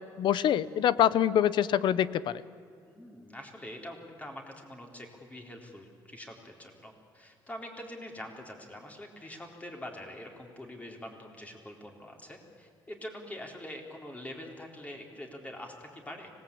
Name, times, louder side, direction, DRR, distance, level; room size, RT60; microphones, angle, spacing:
voice 1, 0.2-2.4, left 10 dB, 70° left, 17 dB, 0.8 m, -25 dB
voice 2, 2.9-16.3, left 1 dB, 15° left, 2 dB, 4.2 m, -44 dB
25.5 x 19.0 x 8.6 m, 2.3 s
cardioid pair, 100°, 8 cm